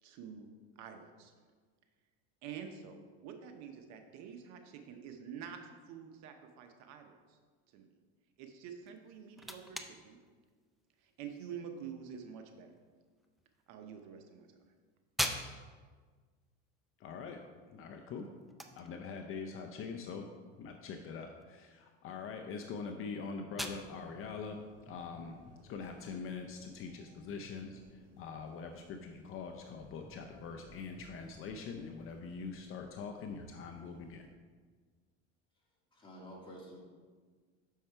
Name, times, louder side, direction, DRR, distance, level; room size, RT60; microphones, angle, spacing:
voice 1, 0.0-0.5 0.8-1.3 2.4-5.6 5.9-7.4 7.7-7.9 8.4-10.2 11.0-12.7 13.7-14.5, right 7 dB, 60° right, 6 dB, 0.9 m, -48 dB
sound 1, 8.8-26.5, equal, ahead, 0.3 m, -46 dB
voice 2, 17.0-17.4 17.7-18.3 18.7-20.3 20.6-34.3, left 5 dB, 40° left, 4 dB, 0.6 m, -43 dB
sound 2, 23.6-34.3, right 1 dB, 20° right, 2.2 m, -60 dB
voice 3, 35.9-36.8, equal, 15° left, -4 dB, 2.2 m, -50 dB
6.4 x 5.5 x 4.5 m, 1.5 s
supercardioid pair, 115°, 32 cm